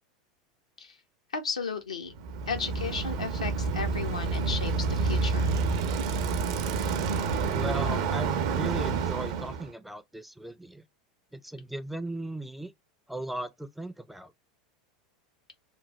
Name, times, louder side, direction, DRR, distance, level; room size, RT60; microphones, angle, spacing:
voice 1, 1.3-2.1 2.5-5.5, left 5 dB, 85° left, 0.6 m, -34 dB
Bicycle, 2.2-9.7, right 4 dB, 60° right, 0.5 m, -28 dB
voice 2, 7.5-10.8 11.3-12.7 13.1-14.3, right 1 dB, 5° right, 0.3 m, -37 dB
3.1 x 2.1 x 2.9 m
figure-of-eight pair, 85°, 3 cm